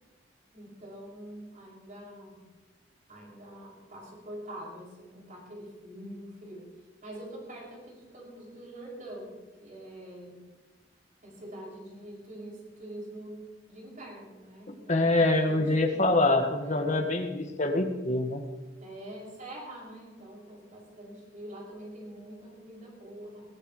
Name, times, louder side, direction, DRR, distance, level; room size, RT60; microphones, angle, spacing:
voice 1, 0.5-2.5 3.1-6.7 7.0-10.4 11.2-16.2 16.5-17.1 18.8-23.6, right 1 dB, 45° right, -3 dB, 6.3 m, -45 dB
voice 2, 14.9-18.4, left 2 dB, 40° left, 4 dB, 1.6 m, -25 dB
22.0 x 15.5 x 3.2 m, 1.2 s
head